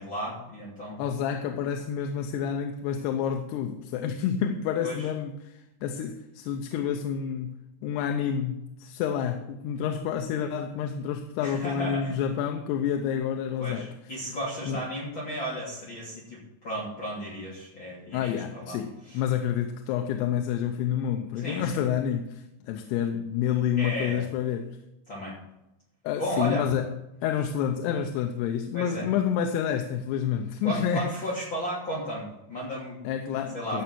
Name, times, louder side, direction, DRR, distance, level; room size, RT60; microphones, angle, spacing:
voice 1, 0.0-1.0 4.8-5.0 11.4-12.2 13.6-18.8 19.0-19.2 21.4-21.8 23.8-24.2 25.1-25.3 26.2-26.6 28.7-29.1 30.6-33.0 33.5-33.8, equal, 30° left, 3.1 m, -34 dB
voice 2, 1.0-13.9 14.7-14.8 18.1-24.8 26.0-26.9 27.2-31.1 33.0-33.8, left 8 dB, 85° left, 2.9 m, -29 dB
15.5 x 5.6 x 6.2 m
omnidirectional pair, 4.7 m